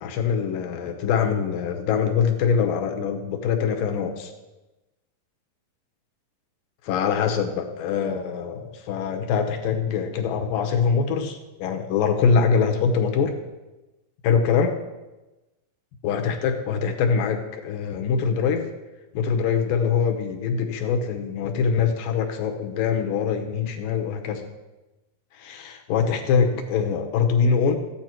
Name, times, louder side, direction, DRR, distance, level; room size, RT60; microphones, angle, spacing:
voice 1, 0.0-4.3 6.8-13.4 14.2-14.8 16.0-18.7 19.1-24.5 25.3-27.8, left 6 dB, 75° left, 4 dB, 2.6 m, -23 dB
13.5 x 9.2 x 4.5 m, 1.1 s
omnidirectional pair, 4.2 m